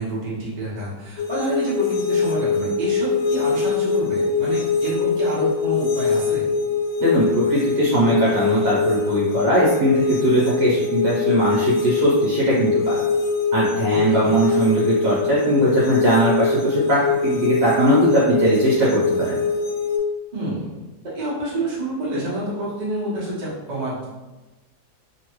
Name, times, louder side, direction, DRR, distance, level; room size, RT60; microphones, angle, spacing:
voice 1, 0.0-6.4 14.1-14.3 20.3-20.8 21.1-24.0, right 1 dB, 35° right, -9 dB, 0.8 m, -28 dB
sound 1, 1.2-20.0, left 4 dB, 75° left, 1.1 m, -22 dB
voice 2, 7.0-13.0 13.5-19.4, right 1 dB, 65° right, -7 dB, 1.3 m, -20 dB
3.3 x 2.3 x 3.0 m, 1.1 s
omnidirectional pair, 2.1 m